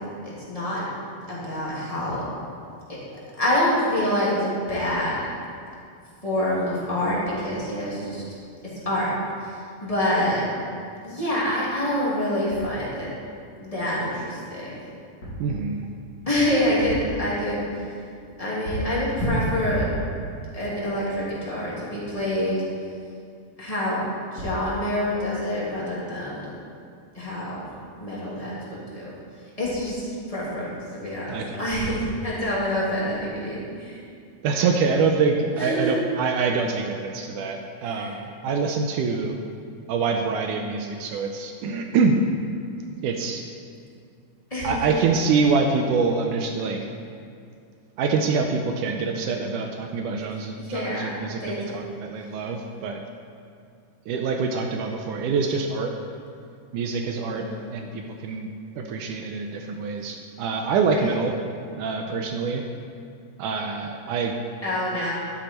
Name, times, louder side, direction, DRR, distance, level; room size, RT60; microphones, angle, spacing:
voice 1, 0.2-0.8 1.3-2.2 3.4-5.2 6.2-8.2 8.8-9.1 9.8-10.4 11.0-13.1 13.6-14.8 16.3-17.6 18.4-19.9 20.5-22.6 23.6-24.0 24.3-26.4 27.1-27.6 28.0-29.1 29.6-34.0 35.6-36.0 37.8-38.2 44.5-44.9 50.6-51.8 57.3-57.7 60.9-61.2 64.6-65.1, left 1 dB, 10° left, -8 dB, 2.1 m, -26 dB
sound 1, 15.2-15.5 16.6-17.2 18.6-19.0 19.6-20.1 24.1-24.2 24.4-24.7, right 1 dB, 30° left, 2.3 m, -32 dB
voice 2, 15.4-15.9 31.3-31.7 34.4-39.4 39.9-42.2 43.0-43.4 44.6-46.8 48.0-51.4 51.7-53.0 54.1-55.9 56.7-57.4 57.7-58.5 58.8-61.3 61.8-62.6 63.4-64.4, right 4 dB, 80° right, 3 dB, 1.9 m, -25 dB
12.0 x 8.9 x 4.5 m, 2.4 s
omnidirectional pair, 4.2 m